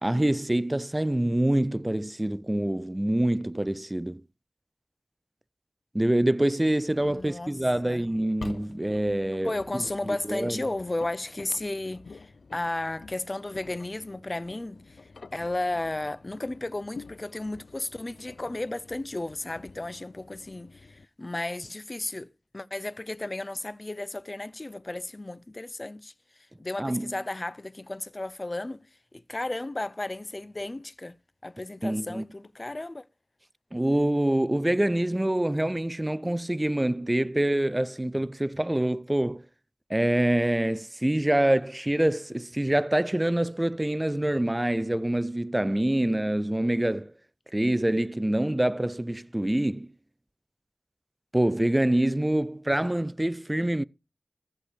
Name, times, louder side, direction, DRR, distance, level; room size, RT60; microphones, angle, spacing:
voice 1, 0.0-4.2 5.9-10.7 26.8-27.1 31.8-32.2 33.7-39.4 39.9-47.1 47.5-49.9 51.3-53.8, right 1 dB, 20° right, 0.5 m, -26 dB
Engine, 6.9-21.1, left 4 dB, 85° left, 0.5 m, -49 dB
voice 2, 7.0-7.6 7.8-8.0 9.4-15.0 15.3-22.3 22.5-26.1 26.6-28.8 29.1-31.2 31.4-33.0, left 2 dB, 35° left, 0.6 m, -34 dB
14.0 x 6.7 x 5.0 m
wide cardioid pair, 55°, 0 cm